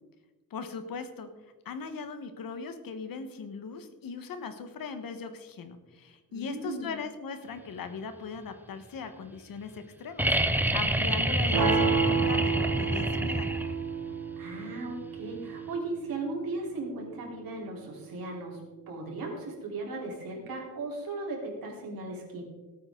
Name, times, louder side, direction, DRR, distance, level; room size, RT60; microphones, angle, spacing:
voice 1, 0.5-1.3 1.6-13.5, left 5 dB, 75° left, 8 dB, 1.5 m, -39 dB
voice 2, 6.3-7.0 14.4-18.6 18.9-22.4, right 2 dB, 80° right, -2 dB, 4.1 m, -37 dB
sound 1, 10.2-14.0 15.7-15.8, right 1 dB, 5° right, 0.6 m, -27 dB
sound 2, 11.5-17.6, right 5 dB, 65° right, 1.4 m, -31 dB
17.5 x 8.9 x 3.9 m, 1.2 s
wide cardioid pair, 145°, 34 cm